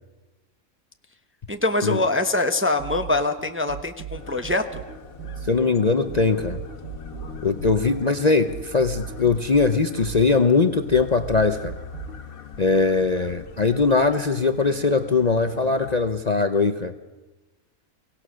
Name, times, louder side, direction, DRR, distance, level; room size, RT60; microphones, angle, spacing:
voice 1, 1.5-4.8, left 2 dB, 10° right, 7 dB, 0.7 m, -24 dB
sound 1, 2.8-12.2, right 9 dB, 65° right, 1.3 m, -37 dB
sound 2, 4.1-15.9, left 4 dB, 85° left, 1.8 m, -41 dB
voice 2, 5.4-6.6 7.4-11.8 12.6-16.9, left 4 dB, 35° left, 8 dB, 0.7 m, -21 dB
24.0 x 18.0 x 6.3 m, 1.1 s
omnidirectional pair, 1.4 m